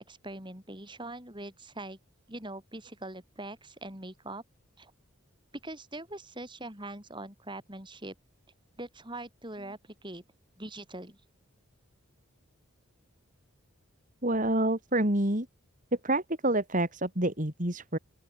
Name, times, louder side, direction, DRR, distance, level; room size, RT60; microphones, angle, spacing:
voice 1, 0.1-2.0 2.3-4.4 4.8-4.9 5.6-8.1 8.8-10.2 10.6-11.2, right 1 dB, 20° right, 6.3 m, -42 dB
voice 2, 14.2-15.5 16.0-18.0, right 1 dB, 35° right, 3.7 m, -27 dB
open air
head